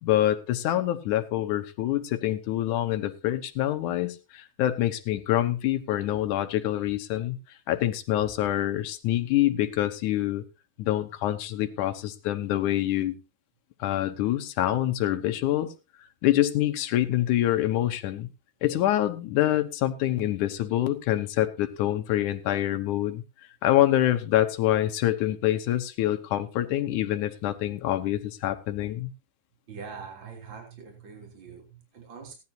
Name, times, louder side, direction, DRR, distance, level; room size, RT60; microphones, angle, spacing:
voice 1, 0.0-7.4 7.7-10.4 10.8-13.1 13.8-15.7 16.2-18.3 18.6-23.2 23.6-29.1, left 13 dB, 70° left, 7 dB, 2.3 m, -26 dB
voice 2, 29.7-32.3, right 5 dB, 35° right, 1 dB, 3.8 m, -43 dB
17.5 x 11.0 x 2.8 m, 0.29 s
omnidirectional pair, 4.0 m